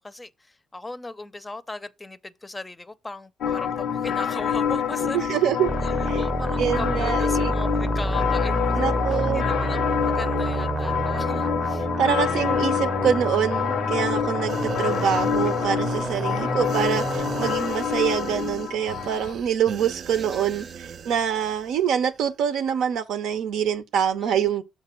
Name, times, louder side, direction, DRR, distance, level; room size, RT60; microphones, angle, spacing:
voice 1, 0.0-5.4 5.8-11.9 16.3-17.0 20.1-20.8 24.2-24.5, left 2 dB, 20° left, 0.5 m, -38 dB
sound 1, 3.4-19.3, left 8 dB, 70° left, 0.5 m, -27 dB
voice 2, 5.1-5.7 6.1-6.2 6.6-7.5 8.8-9.4 12.0-24.6, right 8 dB, 85° right, 0.7 m, -25 dB
sound 2, 5.7-17.6, right 2 dB, 25° right, 0.7 m, -29 dB
sound 3, 14.5-21.8 22.1-22.3, right 7 dB, 60° right, 0.3 m, -39 dB
6.7 x 3.3 x 5.9 m
cardioid pair, 90°, 0 cm